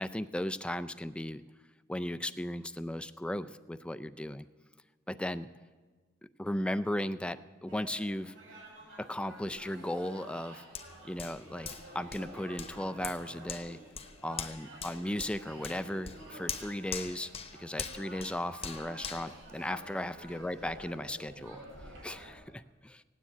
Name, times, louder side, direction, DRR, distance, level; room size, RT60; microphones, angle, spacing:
voice 1, 0.0-1.4 1.9-4.5 5.1-5.5 6.4-8.3 9.0-10.7 11.0-11.7 11.9-13.8 14.2-17.3 17.6-23.0, left 1 dB, 5° left, 12 dB, 0.4 m, -36 dB
sound 1, 7.7-22.3, right 1 dB, 75° right, 6.1 m, -50 dB
Hands, 10.7-20.3 20.7-20.9, left 6 dB, 30° left, 1.0 m, -43 dB
17.0 x 9.8 x 8.4 m, 1.4 s
head